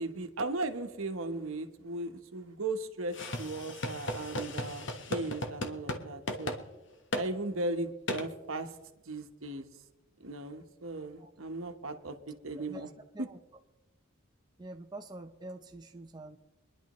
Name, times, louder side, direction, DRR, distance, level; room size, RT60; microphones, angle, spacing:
voice 1, 0.0-6.6 7.1-8.7 9.1-9.7 10.2-12.9, right 2 dB, 70° right, 7 dB, 1.1 m, -37 dB
sound 1, 3.1-6.0 6.3-6.6 7.1-7.3 8.1-8.2, left 1 dB, 55° left, 1.2 m, -35 dB
voice 2, 12.6-13.4 14.6-16.4, right 2 dB, 20° right, 3 dB, 0.6 m, -46 dB
25.0 x 11.0 x 3.1 m, 1.1 s
head